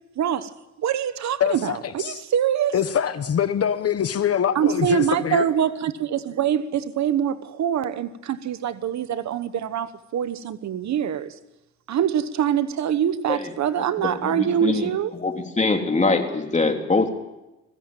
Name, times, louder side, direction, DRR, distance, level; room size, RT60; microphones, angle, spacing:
voice 1, 0.2-0.5 0.8-2.7 4.5-11.3 11.9-15.1, right 9 dB, 65° right, 1.2 m, -24 dB
voice 2, 1.4-2.2 2.7-5.5, left 8 dB, 50° left, 1.2 m, -24 dB
voice 3, 13.8-14.9 15.2-17.1, left 3 dB, 25° left, 3.3 m, -23 dB
21.5 x 16.0 x 9.1 m
cardioid pair, 90°, 30 cm